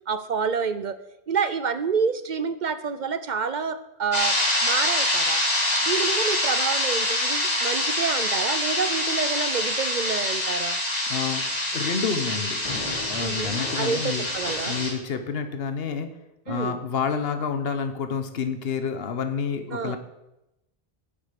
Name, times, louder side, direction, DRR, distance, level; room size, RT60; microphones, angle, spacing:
voice 1, 0.1-1.0 1.3-5.4 5.9-10.8 13.2-14.8 16.5-16.8 19.7-20.0, right 6 dB, 55° right, 13 dB, 0.6 m, -28 dB
sound 1, 4.1-14.9, left 1 dB, 40° left, 2.1 m, -25 dB
voice 2, 11.1-11.4 11.7-14.3 14.7-16.1 16.5-20.0, left 6 dB, 70° left, 8 dB, 1.2 m, -29 dB
8.8 x 8.3 x 5.8 m, 0.89 s
omnidirectional pair, 1.1 m